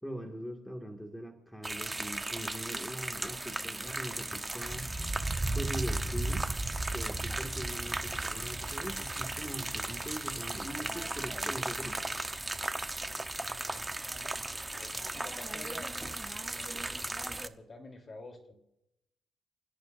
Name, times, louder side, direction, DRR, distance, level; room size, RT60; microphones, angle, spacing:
voice 1, 0.0-4.9 5.5-6.5 6.9-12.0, right 1 dB, 5° left, 2 dB, 2.1 m, -42 dB
sound 1, 1.6-17.5, right 2 dB, 15° right, 1.0 m, -35 dB
voice 2, 13.4-13.9 14.7-16.0 16.4-18.5, left 2 dB, 35° left, 4 dB, 3.6 m, -50 dB
29.5 x 17.0 x 2.7 m, 0.83 s
cardioid pair, 90°, 0 cm